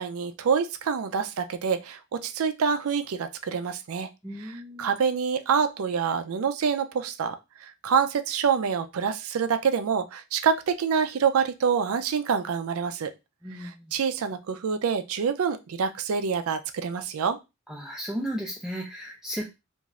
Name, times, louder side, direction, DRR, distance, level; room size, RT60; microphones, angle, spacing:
voice 1, 0.0-4.1 4.4-13.1 13.5-17.4, right 6 dB, 90° right, 9 dB, 0.4 m, -26 dB
voice 2, 4.2-4.9 13.4-13.9 17.7-19.4, equal, ahead, -3 dB, 0.4 m, -35 dB
2.5 x 2.4 x 3.0 m, 0.25 s
head